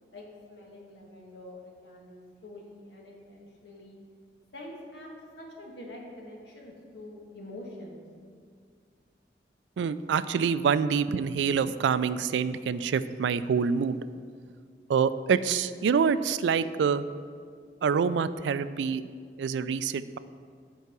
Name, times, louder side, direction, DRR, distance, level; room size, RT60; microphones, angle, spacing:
voice 1, 0.1-4.0 4.5-8.0, left 1 dB, 80° left, -2 dB, 1.6 m, -46 dB
voice 2, 9.8-14.0 14.9-17.0 17.8-19.1 19.4-20.2, right 6 dB, 90° right, 14 dB, 0.3 m, -26 dB
8.2 x 4.7 x 6.0 m, 2.1 s
head